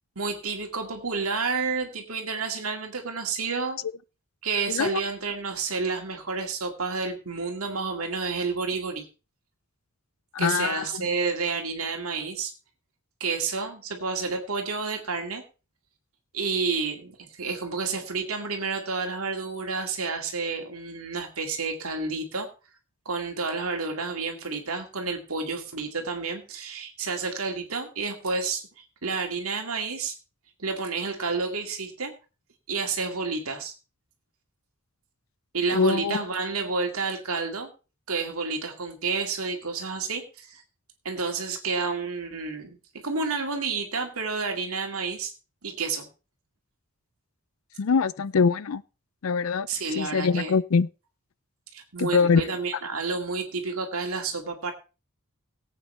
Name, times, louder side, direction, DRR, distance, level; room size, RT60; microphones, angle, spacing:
voice 1, 0.2-3.8 4.4-9.1 10.4-12.5 13.2-15.4 16.3-22.5 23.1-30.1 30.6-32.1 32.7-33.7 35.5-37.7 38.1-40.6 41.0-42.8 43.0-45.3 45.6-46.1 49.7-50.5 51.7-54.7, right 4 dB, 85° right, 2.2 m, -30 dB
voice 2, 10.3-10.9 35.7-36.2 47.8-48.8 49.2-49.7 50.0-50.9 52.0-52.4, left 5 dB, 75° left, 0.5 m, -23 dB
18.0 x 8.3 x 3.3 m
head